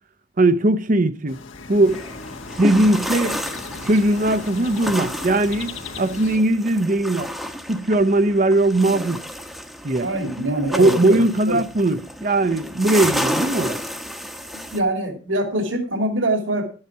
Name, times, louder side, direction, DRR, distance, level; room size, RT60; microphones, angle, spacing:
voice 1, 0.4-1.4 1.7-2.1 2.6-3.4 3.8-7.3 7.7-9.2 9.8-10.1 10.7-13.8, right 2 dB, 40° right, 0.7 m, -19 dB
sound 1, 1.3-6.4, left 4 dB, 80° left, 1.9 m, -37 dB
sound 2, 1.9-14.8, equal, ahead, 1.0 m, -31 dB
voice 2, 10.0-11.2 11.5-11.6 14.5-16.7, right 1 dB, 70° right, 2.5 m, -24 dB
12.0 x 9.7 x 4.6 m
head